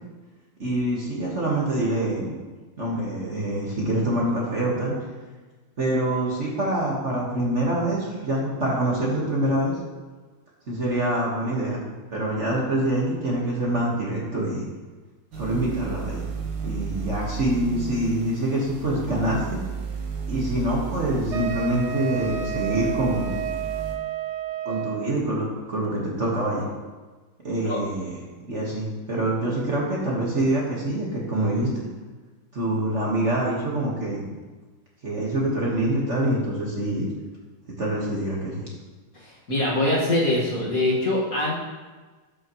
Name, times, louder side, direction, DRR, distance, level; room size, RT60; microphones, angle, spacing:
voice 1, 0.6-2.3 2.8-4.9 5.8-9.7 10.7-11.8 12.1-14.6 15.3-16.2 16.6-19.6 20.3-23.4 24.6-26.6 27.4-28.1 28.4-31.8 32.5-34.3 35.0-37.1 37.8-38.6, right 1 dB, 35° right, -5 dB, 1.7 m, -25 dB
sound 1, 15.3-24.0, right 5 dB, 65° right, 1.7 m, -34 dB
Wind instrument woodwind instrument, 21.3-25.2, right 9 dB, 85° right, 1.5 m, -31 dB
voice 2, 39.1-41.5, left 1 dB, 45° left, -5 dB, 2.1 m, -23 dB
12.5 x 6.8 x 3.1 m, 1.3 s
omnidirectional pair, 2.3 m